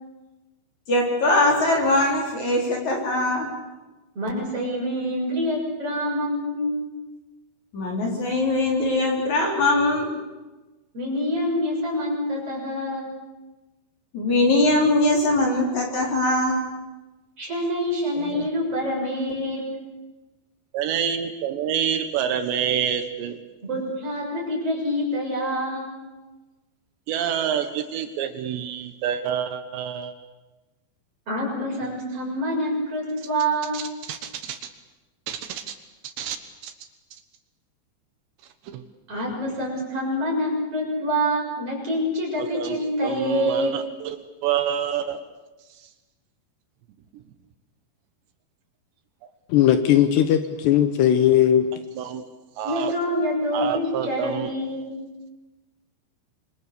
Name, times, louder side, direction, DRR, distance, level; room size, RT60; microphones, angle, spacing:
voice 1, 0.9-3.5 7.7-10.2 14.1-16.6, left 2 dB, 40° left, 0 dB, 4.9 m, -21 dB
voice 2, 4.2-6.8 10.9-13.1 17.4-19.6 23.6-26.0 31.3-33.8 39.1-43.7 52.6-55.0, equal, 30° right, -2 dB, 7.6 m, -26 dB
voice 3, 18.1-18.5 20.7-23.4 27.1-30.1 33.7-34.7 35.3-35.8 36.0-36.4 36.6-36.7 38.6-38.8 42.4-45.3 45.8-45.9 47.1-47.2 51.9-52.2 52.6-52.9 53.5-54.5, right 9 dB, 75° right, 9 dB, 3.3 m, -28 dB
voice 4, 49.5-51.7, left 10 dB, 75° left, 9 dB, 3.0 m, -18 dB
26.5 x 24.0 x 6.9 m, 1.2 s
omnidirectional pair, 5.3 m